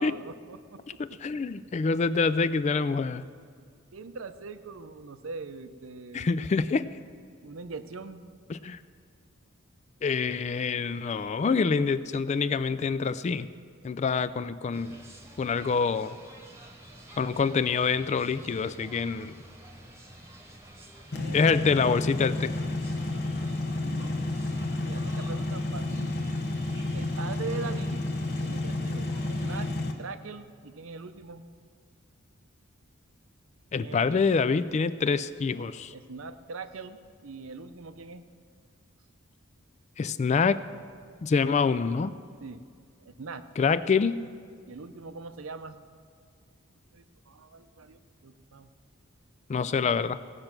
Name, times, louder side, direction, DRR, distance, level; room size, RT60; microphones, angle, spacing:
voice 1, 0.0-1.4 3.9-6.3 7.4-8.3 21.1-21.4 23.8-24.2 24.9-26.1 26.9-28.0 28.4-29.7 30.0-31.4 33.8-34.1 35.9-38.3 42.4-42.6 43.0-43.5 44.7-45.8 46.9-48.7, right 4 dB, 75° right, 11 dB, 0.6 m, -42 dB
voice 2, 1.0-3.2 6.1-6.9 8.5-8.8 10.0-13.5 13.8-15.0 15.4-16.1 17.2-19.3 21.3-22.5 33.7-35.9 40.0-40.6 41.2-42.1 43.6-44.2 49.5-50.2, left 5 dB, 35° left, 15 dB, 0.3 m, -26 dB
sound 1, 14.7-29.7, right 1 dB, 15° right, 1.3 m, -49 dB
sound 2, 21.1-29.9, left 2 dB, 50° left, 1.0 m, -31 dB
17.0 x 6.5 x 5.9 m, 2.2 s
head